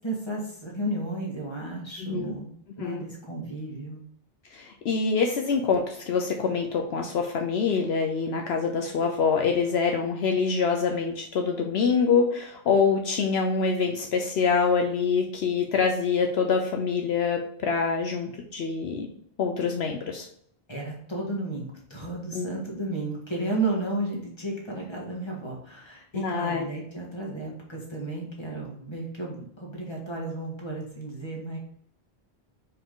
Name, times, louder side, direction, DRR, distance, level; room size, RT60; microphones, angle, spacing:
voice 1, 0.0-2.5 2.8-4.0 20.7-31.6, right 2 dB, 25° left, -2 dB, 1.7 m, -33 dB
voice 2, 2.0-2.3 2.8-3.0 4.5-19.1 19.4-20.3 22.3-22.5 26.1-26.6, left 5 dB, 75° left, 3 dB, 1.0 m, -25 dB
5.1 x 4.8 x 3.8 m, 0.64 s
omnidirectional pair, 1.1 m